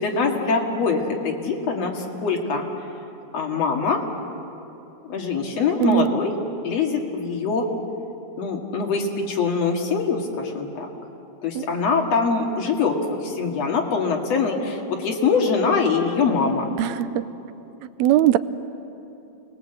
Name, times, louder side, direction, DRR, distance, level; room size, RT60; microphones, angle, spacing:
voice 1, 0.0-2.7 3.3-4.0 5.0-6.3 6.6-7.7 8.4-10.9 11.4-13.0 13.2-16.7, left 5 dB, 60° left, 2 dB, 3.2 m, -23 dB
voice 2, 5.8-6.1 11.6-11.7 16.8-17.3 18.0-18.4, right 12 dB, 75° right, 13 dB, 1.9 m, -19 dB
28.0 x 20.5 x 8.0 m, 2.9 s
omnidirectional pair, 3.4 m